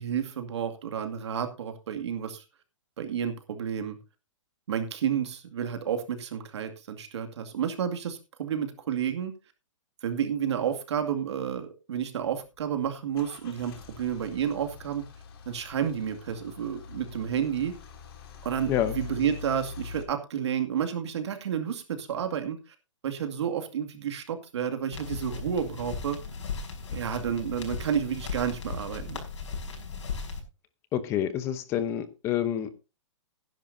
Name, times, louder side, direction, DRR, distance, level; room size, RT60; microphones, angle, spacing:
voice 1, 0.0-2.4 3.0-4.0 4.7-9.3 10.0-15.0 15.5-17.7 18.4-22.6 23.0-26.2 26.9-29.2, right 8 dB, 60° right, 2.3 m, -31 dB
Car / Engine starting / Idling, 12.4-20.0, left 5 dB, 50° left, 2.7 m, -44 dB
sound 1, 24.9-30.4, left 5 dB, 65° left, 5.2 m, -37 dB
voice 2, 30.9-32.7, left 10 dB, 15° left, 0.8 m, -28 dB
17.5 x 10.5 x 2.7 m
hypercardioid pair, 165°, 16 cm